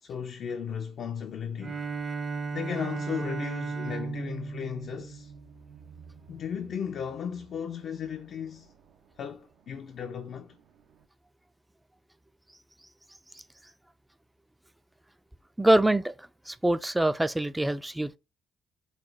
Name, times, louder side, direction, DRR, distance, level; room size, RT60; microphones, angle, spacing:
voice 1, 0.0-1.8 2.5-5.3 6.3-8.7 9.2-10.6, left 7 dB, 65° left, 0.4 m, -36 dB
Bowed string instrument, 1.6-5.9, right 4 dB, 40° right, 0.8 m, -35 dB
sound 1, 3.8-11.1, right 7 dB, 85° right, 0.7 m, -55 dB
voice 2, 15.6-16.1 16.5-18.2, right 1 dB, 10° right, 0.3 m, -24 dB
4.0 x 2.2 x 3.3 m
cardioid pair, 90°, 0 cm